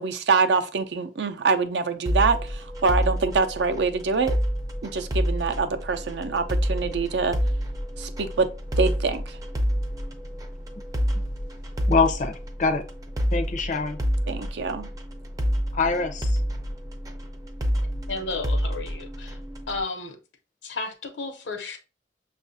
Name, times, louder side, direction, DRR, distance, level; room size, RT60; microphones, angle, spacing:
voice 1, 0.0-4.4 4.8-7.4 8.0-8.5 8.8-9.4 14.3-14.9, right 4 dB, 70° right, 0.5 m, -25 dB
sound 1, 2.1-19.8, equal, 20° right, 0.5 m, -28 dB
voice 2, 11.9-12.9 13.3-14.0 15.7-16.4, left 4 dB, 45° left, 0.5 m, -24 dB
voice 3, 18.1-19.4 19.7-20.2 20.6-21.8, left 3 dB, 80° left, 0.9 m, -33 dB
6.1 x 2.4 x 2.6 m
head